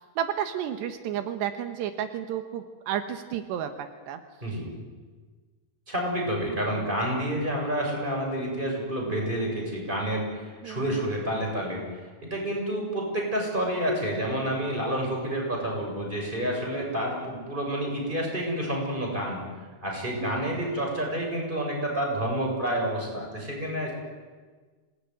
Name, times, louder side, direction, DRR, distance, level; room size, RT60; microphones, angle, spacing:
voice 1, 0.2-4.2 10.6-11.1 20.2-20.6, right 9 dB, 80° right, 8 dB, 3.4 m, -32 dB
voice 2, 5.9-19.4 19.8-23.9, right 1 dB, 10° right, 0 dB, 6.9 m, -29 dB
26.5 x 19.5 x 9.6 m, 1.4 s
omnidirectional pair, 4.8 m